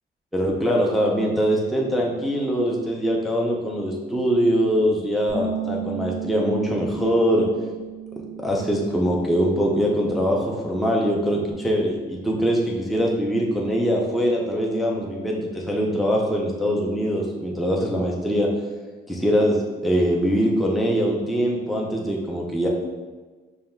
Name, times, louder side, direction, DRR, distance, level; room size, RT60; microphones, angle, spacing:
voice 1, 0.3-7.5 8.4-18.5 19.1-22.7, equal, ahead, -2 dB, 0.5 m, -22 dB
Bass guitar, 5.3-11.5, right 7 dB, 70° left, 1.3 m, -35 dB
7.1 x 2.4 x 2.2 m, 1.3 s
cardioid pair, 90°, 20 cm